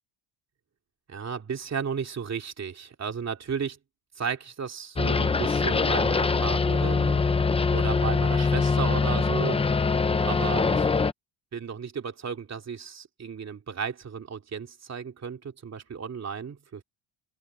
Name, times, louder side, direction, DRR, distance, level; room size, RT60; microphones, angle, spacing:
voice 1, 1.1-3.8 4.2-7.2 7.7-9.6 10.2-10.9 11.5-16.8, right 6 dB, 30° right, 2.8 m, -34 dB
sound 1, 5.0-11.1, left 4 dB, 15° left, 0.4 m, -23 dB
open air
cardioid pair, 175°, 50 cm